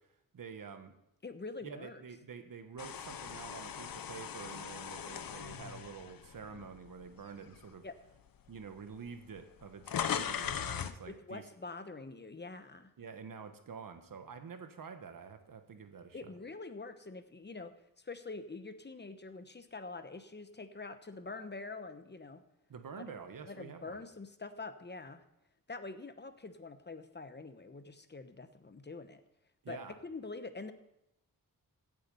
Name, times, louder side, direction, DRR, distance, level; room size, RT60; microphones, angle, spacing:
voice 1, 0.3-0.9 1.6-7.8 8.5-11.4 13.0-16.3 22.7-24.0 29.6-29.9, right 6 dB, 75° right, 8 dB, 1.4 m, -48 dB
voice 2, 1.2-2.0 7.8-7.9 11.1-12.9 16.1-22.4 23.1-23.2 23.4-25.2 25.7-29.2 29.7-29.8 30.0-30.7, left 3 dB, 30° left, 10 dB, 1.0 m, -45 dB
sound 1, 2.8-7.0 7.5-7.7 8.6-8.7 8.9-11.0, left 8 dB, 85° left, 0.8 m, -39 dB
16.0 x 8.4 x 5.5 m, 0.83 s
wide cardioid pair, 105°, 34 cm